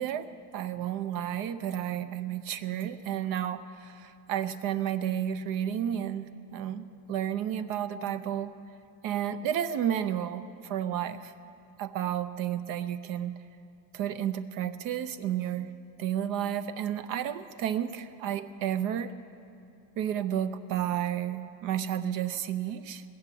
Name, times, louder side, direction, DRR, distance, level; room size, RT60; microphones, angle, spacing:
voice 1, 0.0-8.6 9.0-11.3 11.8-13.4 13.9-15.7 16.0-19.1 20.0-23.0, right 10 dB, 50° right, 13 dB, 0.5 m, -32 dB
17.5 x 7.0 x 9.1 m, 2.6 s
cardioid pair, 180°, 46 cm